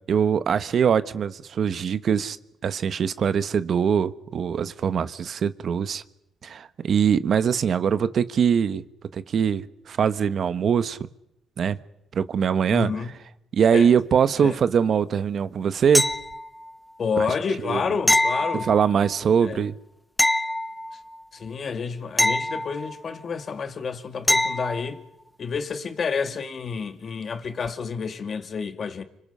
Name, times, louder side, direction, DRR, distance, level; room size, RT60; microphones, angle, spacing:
voice 1, 0.1-2.4 2.6-6.0 6.4-8.8 9.1-11.0 11.6-11.8 12.1-12.9 13.5-16.1 17.2-17.3 17.6-17.8 18.6-19.7, right 7 dB, 55° right, 1.1 m, -22 dB
voice 2, 12.7-13.1 13.7-13.9 14.4-14.6 17.0-18.7 19.4-19.6 21.3-25.0 25.4-29.0, left 5 dB, 45° left, 2.3 m, -29 dB
sound 1, 15.9-16.7 18.1-19.1 20.2-21.2 22.2-23.2 24.3-24.9 27.6-27.7, left 1 dB, 5° left, 1.2 m, -24 dB
29.5 x 25.5 x 5.6 m
cardioid pair, 90°, 0 cm